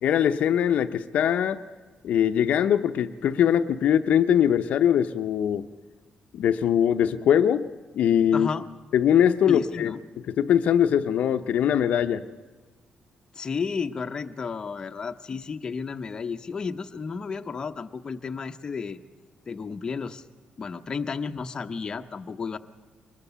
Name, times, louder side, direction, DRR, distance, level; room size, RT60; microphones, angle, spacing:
voice 1, 0.0-1.6 2.0-5.7 6.3-7.7 7.9-8.5 8.9-10.0 10.3-12.2, left 9 dB, 70° left, 8 dB, 0.7 m, -22 dB
voice 2, 8.3-8.6 9.5-10.0 13.3-19.0 19.5-20.2 20.6-22.6, left 5 dB, 30° left, 6 dB, 0.8 m, -32 dB
23.0 x 20.5 x 6.9 m, 1.4 s
cardioid pair, 150°, 3 cm